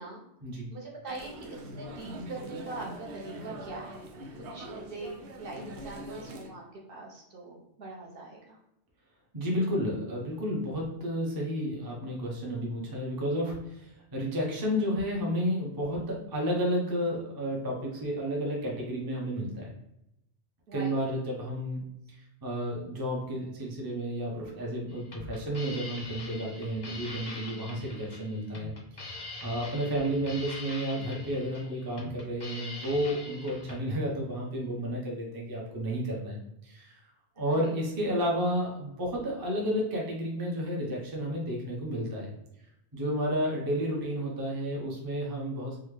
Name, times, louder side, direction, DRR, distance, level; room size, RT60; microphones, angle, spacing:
voice 1, 0.7-4.1 4.5-6.6 6.9-8.6 20.7-20.9 37.5-37.8, right 3 dB, 60° right, -2 dB, 0.9 m, -42 dB
sound 1, 1.1-6.5, right 1 dB, 85° right, 0.9 m, -43 dB
voice 2, 9.3-19.7 20.7-29.2 29.4-36.9 37.4-42.3 42.9-45.8, equal, 25° right, -2 dB, 0.6 m, -31 dB
sound 2, 24.9-33.8, left 3 dB, 35° left, 0.4 m, -43 dB
3.6 x 2.1 x 3.0 m, 0.83 s
omnidirectional pair, 1.1 m